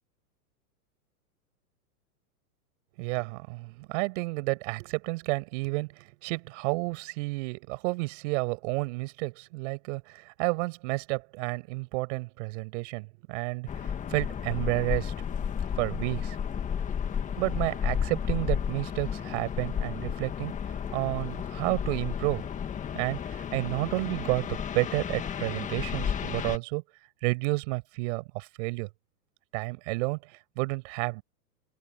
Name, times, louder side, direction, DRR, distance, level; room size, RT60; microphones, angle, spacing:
voice 1, 3.0-15.1 15.8-16.4 17.4-20.5 20.9-22.4 22.9-26.8 27.2-28.9 29.5-31.2, right 25 dB, 50° right, 6.5 m, -31 dB
sound 1, 13.7-26.6, left 8 dB, 15° left, 1.7 m, -32 dB
open air
supercardioid pair, 145°, 47 cm